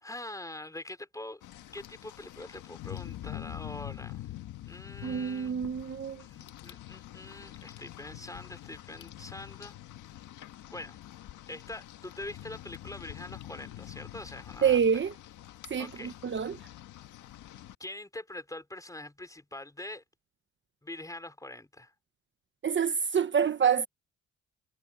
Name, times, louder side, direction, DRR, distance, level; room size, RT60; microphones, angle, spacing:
voice 1, 0.0-1.4 1.7-4.4 4.6-5.5 6.2-9.8 10.7-11.0 11.5-14.8 15.8-16.1 17.8-20.0 20.8-21.9, left 1 dB, 10° left, 4.0 m, -44 dB
Rain, 1.4-17.7, left 14 dB, 80° left, 1.7 m, -45 dB
voice 2, 5.0-6.2 14.6-15.1 15.7-16.6 22.6-23.9, right 7 dB, 40° right, 1.2 m, -27 dB
cardioid pair, 90°, 30 cm